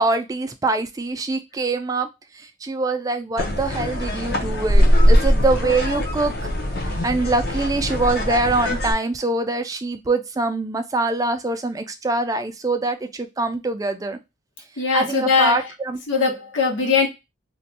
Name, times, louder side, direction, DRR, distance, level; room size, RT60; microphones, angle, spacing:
voice 1, 0.0-2.1 2.3-6.5 7.0-14.2 14.9-16.0, right 2 dB, 20° right, 0.4 m, -24 dB
sound 1, 3.4-8.9, equal, 55° left, 0.7 m, -20 dB
voice 2, 14.8-15.7 16.1-17.1, left 5 dB, 80° left, 1.1 m, -20 dB
2.5 x 2.2 x 4.0 m
head